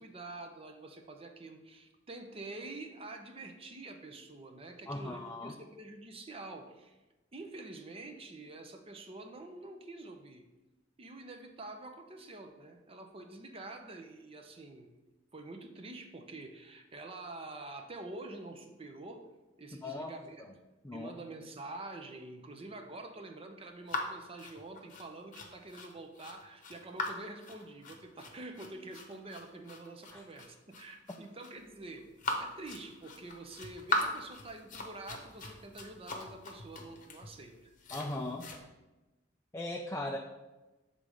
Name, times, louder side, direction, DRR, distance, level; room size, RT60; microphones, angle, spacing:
voice 1, 0.0-7.0 7.3-10.5 11.0-15.0 15.3-19.2 19.6-20.5 20.9-32.1 32.4-37.7, right 2 dB, 30° right, 5 dB, 0.6 m, -47 dB
voice 2, 4.9-5.5 19.8-20.1 20.8-21.1 30.1-30.2 37.9-38.5 39.5-40.2, left 2 dB, 15° left, 1 dB, 0.4 m, -38 dB
sound 1, 23.9-38.6, left 2 dB, 45° left, 0.8 m, -40 dB
6.8 x 3.8 x 4.8 m, 1.1 s
head